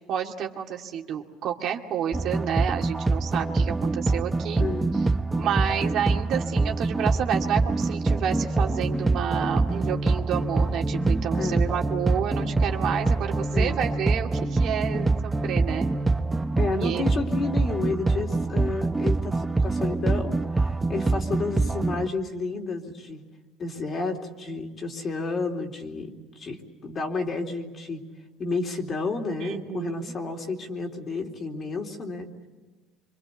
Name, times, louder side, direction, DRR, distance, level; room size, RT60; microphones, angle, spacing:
voice 1, 0.1-4.6 5.4-15.9 16.7-17.1 29.4-30.1, right 9 dB, 60° right, 2 dB, 2.4 m, -30 dB
sound 1, 2.1-22.1, right 3 dB, 15° right, 0.8 m, -25 dB
voice 2, 4.6-4.9 11.3-11.8 13.5-13.9 16.6-23.2 23.6-28.0 28.4-32.3, left 3 dB, 40° left, 2 dB, 3.5 m, -31 dB
26.0 x 24.5 x 8.4 m, 1.2 s
supercardioid pair, 100°, 0 cm